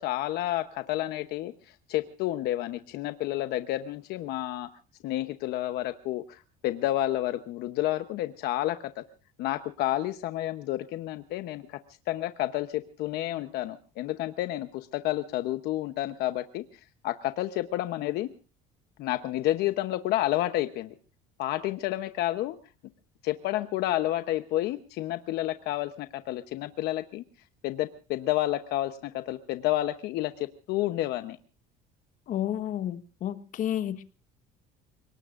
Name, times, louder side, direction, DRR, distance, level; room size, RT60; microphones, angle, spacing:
voice 1, 0.0-1.5 1.9-4.7 5.0-9.0 9.4-11.8 12.1-16.6 17.0-18.3 19.0-20.9 21.4-22.6 23.2-27.2 27.6-31.4, left 14 dB, 70° left, 9 dB, 0.9 m, -30 dB
voice 2, 32.3-34.0, left 11 dB, 50° left, 10 dB, 1.3 m, -31 dB
29.5 x 19.0 x 2.5 m, 0.35 s
cardioid pair, 145°, 17 cm